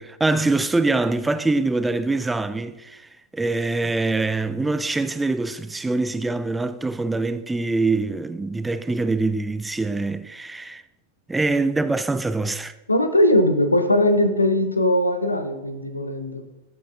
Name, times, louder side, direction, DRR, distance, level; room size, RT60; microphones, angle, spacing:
voice 1, 0.0-10.8 11.3-12.7, right 3 dB, 10° right, 0.4 m, -24 dB
voice 2, 12.9-16.4, left 1 dB, 85° left, 0.7 m, -20 dB
14.5 x 6.0 x 2.4 m
figure-of-eight pair, 90°, 0 cm